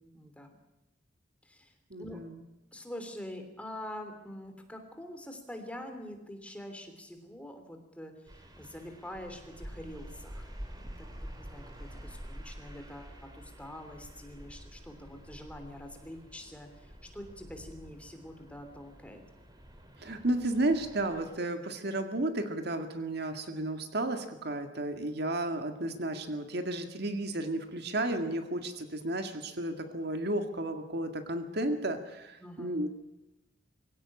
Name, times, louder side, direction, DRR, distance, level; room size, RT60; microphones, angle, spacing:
voice 1, 0.1-0.5 1.4-1.7 2.0-2.2 2.7-11.1 11.4-19.2 32.4-32.9, left 1 dB, 5° left, 5 dB, 3.2 m, -45 dB
voice 2, 1.9-2.4 20.0-32.9, right 1 dB, 55° right, 7 dB, 2.0 m, -33 dB
sound 1, 8.3-21.3, equal, 20° right, 3.3 m, -48 dB
23.5 x 17.0 x 8.7 m, 0.98 s
head